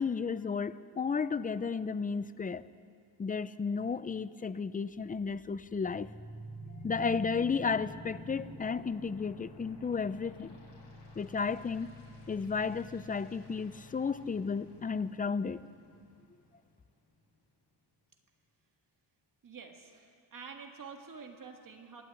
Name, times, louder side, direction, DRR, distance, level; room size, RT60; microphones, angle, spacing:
voice 1, 0.0-2.6 3.2-6.1 6.8-10.6 11.2-11.9 12.3-15.6, left 5 dB, 20° left, 15 dB, 0.4 m, -33 dB
sound 1, 4.9-16.9, left 1 dB, 85° left, 7.6 m, -49 dB
voice 2, 19.4-22.0, right 5 dB, 50° right, 4 dB, 1.7 m, -48 dB
25.5 x 11.5 x 9.0 m, 2.4 s
wide cardioid pair, 165°, 41 cm